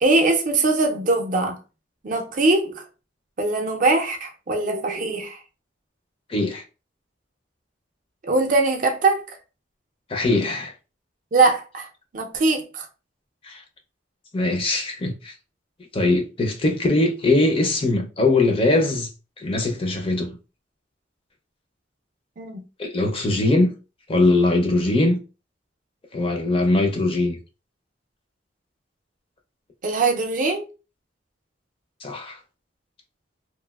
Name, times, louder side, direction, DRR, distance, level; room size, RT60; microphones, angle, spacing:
voice 1, 0.0-1.6 2.0-2.8 3.4-5.4 8.2-9.4 11.3-11.9 12.1-12.9 22.4-22.6 29.8-30.7, right 3 dB, 45° right, 0.5 m, -21 dB
voice 2, 6.3-6.6 10.1-10.7 13.4-13.6 14.3-15.3 15.9-19.1 19.4-20.4 22.8-23.7 24.1-25.2 26.1-27.4 32.0-32.4, left 2 dB, 30° left, 0.4 m, -21 dB
2.9 x 2.4 x 2.3 m
head